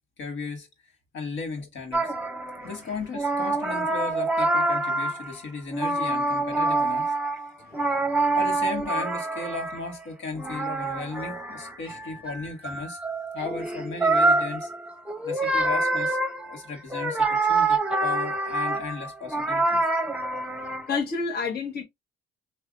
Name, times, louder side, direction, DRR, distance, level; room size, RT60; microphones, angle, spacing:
voice 1, 0.2-2.1 2.6-7.1 8.3-13.0 13.3-14.7 15.2-19.8, left 4 dB, 70° left, 1.4 m, -36 dB
sound 1, 1.9-2.8 3.1-5.4 5.7-10.0 10.3-21.0, right 2 dB, 5° right, 0.8 m, -26 dB
voice 2, 7.6-8.4 20.9-21.8, left 5 dB, 55° left, 1.2 m, -31 dB
5.5 x 2.4 x 2.3 m
cardioid pair, 90°, 20 cm